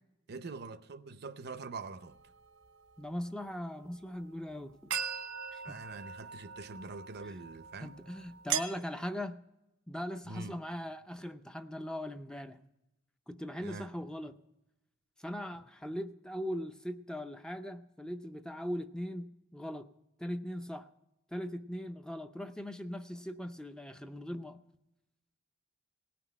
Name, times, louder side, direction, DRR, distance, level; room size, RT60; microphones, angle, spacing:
voice 1, 0.3-2.2 5.6-7.9 10.3-10.5 13.6-13.9, right 3 dB, 55° right, 0.6 m, -44 dB
sound 1, 2.1-2.2 4.9-8.6, right 8 dB, 85° right, 1.0 m, -39 dB
voice 2, 3.0-4.9 5.5-5.8 7.2-7.3 7.8-9.4 9.9-12.6 13.3-14.4 15.2-19.9 20.2-20.9 21.3-24.6, equal, 5° left, 0.4 m, -40 dB
17.5 x 6.0 x 9.6 m
head